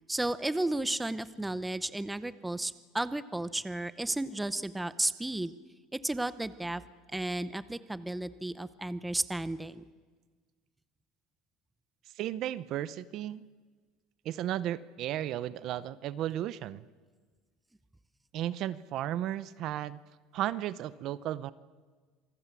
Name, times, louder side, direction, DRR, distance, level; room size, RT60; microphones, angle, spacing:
voice 1, 0.1-5.5 5.9-6.8 7.1-9.8, right 1 dB, 5° right, 14 dB, 0.7 m, -33 dB
voice 2, 12.2-13.5 14.2-16.8 18.3-20.0 20.3-21.5, right 12 dB, 45° right, 17 dB, 0.7 m, -34 dB
27.0 x 19.5 x 8.3 m, 1.5 s
cardioid pair, 160°, 0 cm